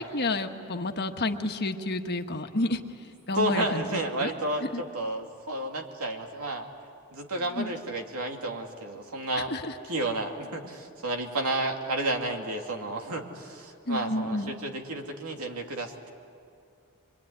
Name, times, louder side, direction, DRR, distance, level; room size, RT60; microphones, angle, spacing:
voice 1, 0.0-4.3 4.6-4.8 7.5-7.7 9.5-9.8 13.9-14.5, left 2 dB, 45° left, 5 dB, 1.3 m, -30 dB
voice 2, 3.4-6.7 7.1-9.5 9.9-16.1, right 1 dB, 80° right, 3 dB, 2.6 m, -31 dB
25.5 x 23.5 x 9.8 m, 2.4 s
head